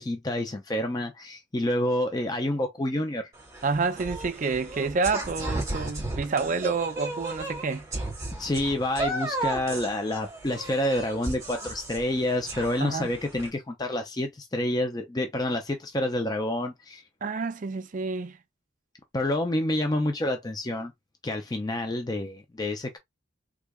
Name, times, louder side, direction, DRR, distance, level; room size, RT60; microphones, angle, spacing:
voice 1, 0.0-3.3 8.4-17.0 19.1-20.9 21.2-23.0, left 1 dB, 20° left, 0.5 m, -28 dB
sound 1, 3.3-13.5, right 2 dB, 15° right, 1.9 m, -35 dB
voice 2, 3.6-7.9 12.8-13.1 17.2-18.4, right 4 dB, 40° right, 0.4 m, -28 dB
3.6 x 3.3 x 2.3 m
head